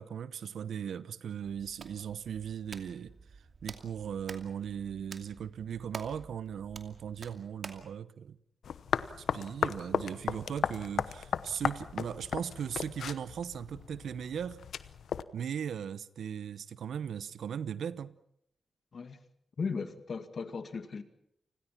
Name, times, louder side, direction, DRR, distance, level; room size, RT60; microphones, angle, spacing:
voice 1, 0.0-3.1 3.6-8.4 9.2-14.6 15.3-18.2, right 8 dB, 80° right, 0.9 m, -38 dB
Hands, 1.4-7.9, right 4 dB, 60° right, 2.6 m, -49 dB
sound 1, 8.6-15.2, left 7 dB, 80° left, 0.9 m, -35 dB
voice 2, 19.6-21.0, left 5 dB, 60° left, 2.2 m, -36 dB
29.5 x 21.0 x 5.9 m
cardioid pair, 55°, 0 cm